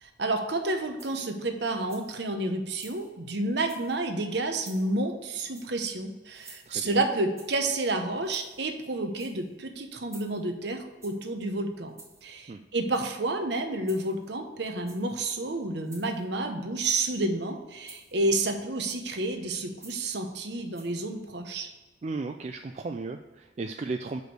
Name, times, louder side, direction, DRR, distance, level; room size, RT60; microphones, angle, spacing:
voice 1, 0.0-11.9 12.2-21.7, right 2 dB, 60° right, 6 dB, 0.9 m, -30 dB
sound 1, 1.0-1.4 1.7-2.2 2.7-3.1 3.6-4.0 4.5-4.9 5.5-5.9 6.3-6.9 7.4-7.7 8.2-8.7 9.0-9.5 10.1-10.5 11.0-11.3 11.9-12.3 12.8-13.3 13.8-14.3 14.8-15.2 15.8-16.3 16.8-17.2 17.8-18.2 18.9-19.2 19.8-20.1 20.7-20.9, right 3 dB, 15° right, 1.2 m, -52 dB
voice 2, 6.7-7.0 12.5-12.6 22.0-24.2, right 3 dB, 35° right, 6 dB, 0.3 m, -35 dB
6.1 x 5.2 x 6.5 m, 1.2 s
head